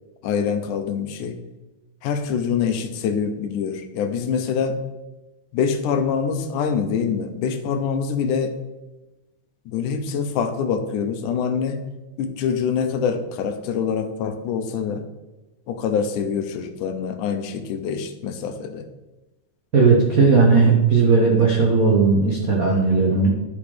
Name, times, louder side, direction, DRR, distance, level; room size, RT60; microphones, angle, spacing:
voice 1, 0.2-1.4 2.0-4.8 5.5-8.5 9.7-11.8 12.2-15.1 15.7-18.9, left 6 dB, 75° left, 7 dB, 2.3 m, -25 dB
voice 2, 19.7-23.3, right 4 dB, 75° right, -2 dB, 0.8 m, -16 dB
11.0 x 6.0 x 5.0 m, 1.1 s
omnidirectional pair, 3.8 m